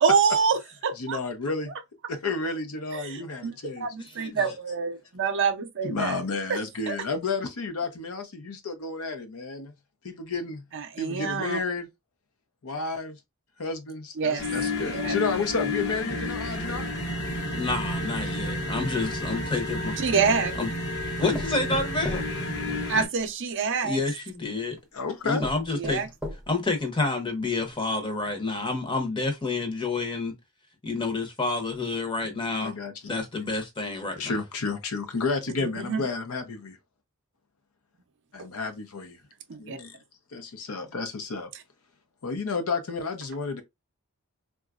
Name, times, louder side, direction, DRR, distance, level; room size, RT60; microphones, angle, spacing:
voice 1, 0.0-1.2 2.9-6.2 6.5-6.6 6.9-7.0 10.7-11.6 14.2-14.4 14.8-15.2 20.0-20.5 22.9-24.0 25.7-26.1 35.6-36.0 39.5-39.8, right 5 dB, 55° right, 0.5 m, -26 dB
voice 2, 1.0-1.7 2.1-3.9 5.8-9.7 10.0-10.6 11.0-11.9 12.6-13.2 13.6-16.9 24.9-25.4 32.6-33.1 34.2-36.8 38.3-39.2 39.6-39.9 40.3-41.5 42.2-43.6, left 4 dB, 75° left, 0.7 m, -31 dB
voice 3, 4.0-4.5 17.5-20.0 20.6-20.7 21.2-22.2 23.8-24.8 25.2-26.1 26.5-30.3 30.8-32.7 33.1-34.3, left 3 dB, 20° left, 0.8 m, -29 dB
sound 1, 14.4-23.1, left 1 dB, 50° left, 1.0 m, -31 dB
sound 2, 20.2-20.6 21.3-23.3 24.3-24.4 25.0-25.1 25.4-26.8 27.2-27.3 27.7-27.8, left 1 dB, 5° right, 0.5 m, -38 dB
3.9 x 2.3 x 2.3 m
head